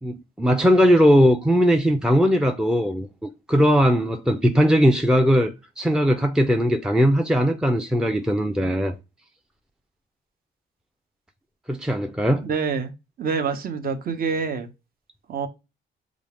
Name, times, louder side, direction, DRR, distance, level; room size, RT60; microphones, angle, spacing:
voice 1, 0.0-9.0 11.7-12.5, equal, 5° right, 0.4 m, -19 dB
voice 2, 12.4-12.9 13.2-14.7 15.3-15.5, right 5 dB, 50° right, 0.8 m, -26 dB
6.1 x 2.4 x 3.4 m
cardioid pair, 90°, 20 cm